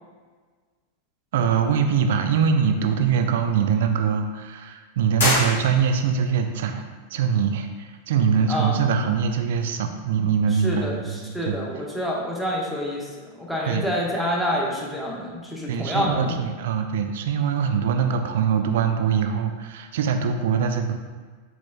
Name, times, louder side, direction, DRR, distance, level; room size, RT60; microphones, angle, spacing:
voice 1, 1.3-6.8 7.1-11.6 13.7-13.9 15.7-20.9, right 7 dB, 55° right, 6 dB, 0.3 m, -23 dB
sound 1, 5.1-6.2, left 1 dB, 70° left, 1.3 m, -24 dB
voice 2, 10.6-10.9 11.3-13.1 13.4-16.4, equal, ahead, -4 dB, 0.7 m, -27 dB
4.0 x 3.0 x 2.3 m, 1.4 s
figure-of-eight pair, 90°, 0 cm